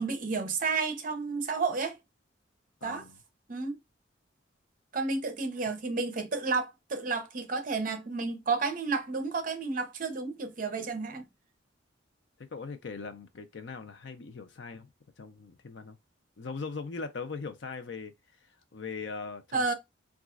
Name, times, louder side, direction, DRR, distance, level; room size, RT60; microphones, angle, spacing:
voice 1, 0.0-2.0 2.8-3.0 3.5-3.8 4.9-11.2 19.5-19.7, right 4 dB, 40° right, 0.6 m, -31 dB
voice 2, 2.8-3.2 12.4-14.9 15.2-16.0 16.4-18.1 18.4-19.7, left 4 dB, 60° left, 0.5 m, -40 dB
3.9 x 2.4 x 2.4 m
head